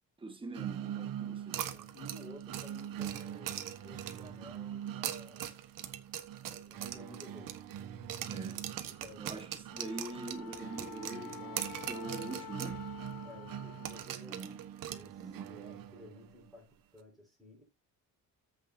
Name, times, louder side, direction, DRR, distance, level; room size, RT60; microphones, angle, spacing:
voice 1, 0.2-1.6 8.3-8.6 9.2-12.8 14.3-14.6 15.2-15.5, right 3 dB, 15° right, 1.5 m, -43 dB
sound 1, 0.5-16.5, right 10 dB, 90° right, 1.2 m, -44 dB
sound 2, 1.5-4.4 4.9-7.8 8.1-12.8 13.1-13.2 13.8-15.5, right 11 dB, 75° right, 1.5 m, -41 dB
voice 2, 1.7-5.4 5.9-6.1 6.4-7.6 8.9-9.5 13.2-14.5 14.9-17.6, left 1 dB, ahead, 5.1 m, -54 dB
Wind instrument woodwind instrument, 9.7-14.1, left 14 dB, 80° left, 0.6 m, -49 dB
14.0 x 6.8 x 2.8 m
cardioid pair, 175°, 33 cm